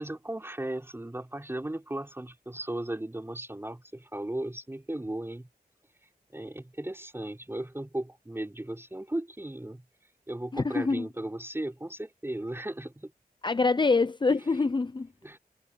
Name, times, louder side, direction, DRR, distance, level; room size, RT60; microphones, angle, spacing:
voice 1, 0.0-5.5 6.3-9.9 10.3-13.1 15.2-15.4, right 1 dB, 15° right, 4.7 m, -36 dB
voice 2, 10.5-11.0 13.4-15.1, left 3 dB, 30° left, 0.6 m, -25 dB
wide cardioid pair, 85°, 15 cm